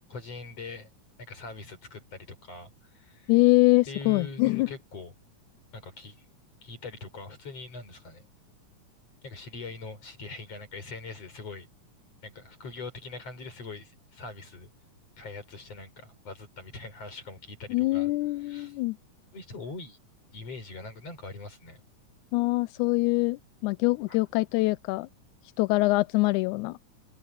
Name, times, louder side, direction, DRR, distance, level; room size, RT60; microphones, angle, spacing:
voice 1, 0.1-0.9 1.2-3.3 3.9-5.1 5.7-6.3 6.6-8.3 9.2-11.7 12.2-14.7 15.2-18.8 19.3-20.0 20.3-21.8 24.1-24.2, left 3 dB, 50° left, 6.9 m, -42 dB
voice 2, 3.3-4.7 17.7-19.0 22.3-25.1 25.6-26.8, left 22 dB, 80° left, 1.9 m, -24 dB
omnidirectional pair, 3.7 m